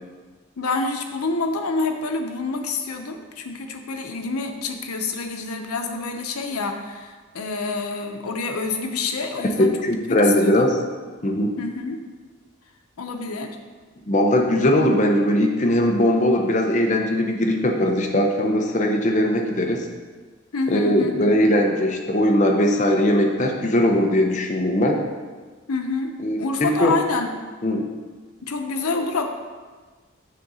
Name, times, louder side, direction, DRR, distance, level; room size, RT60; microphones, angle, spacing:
voice 1, 0.6-9.7 10.1-10.6 11.6-12.0 13.0-13.5 20.5-21.4 25.7-27.3 28.4-29.3, left 3 dB, 90° left, 5 dB, 0.7 m, -27 dB
voice 2, 9.6-10.8 11.2-11.5 14.1-19.9 20.7-25.0 26.2-26.4 26.8-26.9 27.6-27.9, left 1 dB, 35° left, 2 dB, 0.7 m, -20 dB
6.6 x 3.8 x 6.1 m, 1.4 s
head